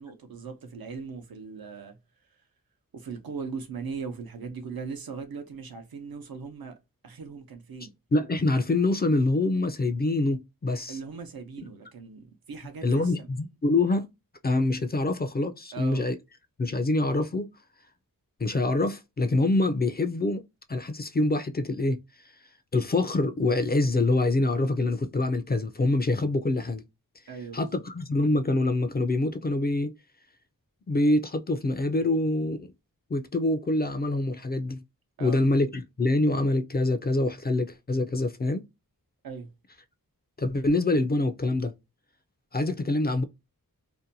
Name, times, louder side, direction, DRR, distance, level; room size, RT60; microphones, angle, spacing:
voice 1, 0.0-2.0 2.9-6.7 7.0-7.9 10.9-13.3 15.7-16.1 27.3-27.8 35.2-35.5 39.2-39.5, right 5 dB, 75° right, 0.7 m, -39 dB
voice 2, 8.1-11.0 12.8-14.1 14.4-16.2 16.6-17.5 18.4-20.4 20.7-22.0 22.7-26.8 27.5-30.0 30.9-32.7 33.1-34.8 35.2-38.6 40.4-41.7 42.5-43.2, left 2 dB, 30° left, 0.4 m, -25 dB
2.6 x 2.1 x 2.7 m
wide cardioid pair, 85°, 35 cm